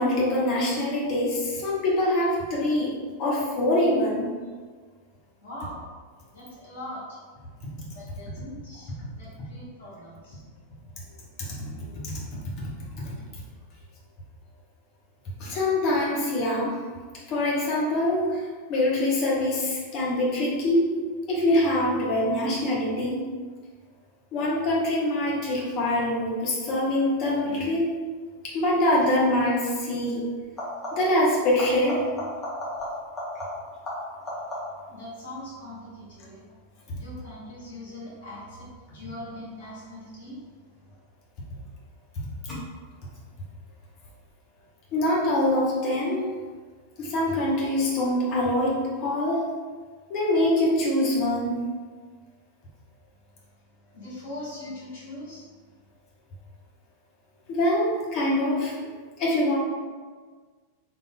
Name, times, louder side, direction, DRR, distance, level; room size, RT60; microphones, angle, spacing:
voice 1, 0.0-4.3 11.9-12.7 13.0-13.1 15.4-16.8 17.3-20.9 21.3-23.2 24.3-27.9 28.4-30.2 30.9-32.1 44.9-46.3 47.0-49.5 50.1-51.6 57.5-58.7 59.2-59.6, left 1 dB, 40° left, -5 dB, 1.0 m, -24 dB
voice 2, 5.4-5.8 6.3-7.2 7.9-10.4 34.9-36.5 36.9-38.7 38.9-40.4 53.9-55.5, left 1 dB, 60° left, -7 dB, 1.5 m, -41 dB
sound 1, 29.0-29.3 30.4-31.2 31.6-34.9 40.4-41.0 42.5-42.6, left 1 dB, 20° left, 1.4 m, -35 dB
4.1 x 3.4 x 2.3 m, 1.5 s
figure-of-eight pair, 90°, 0 cm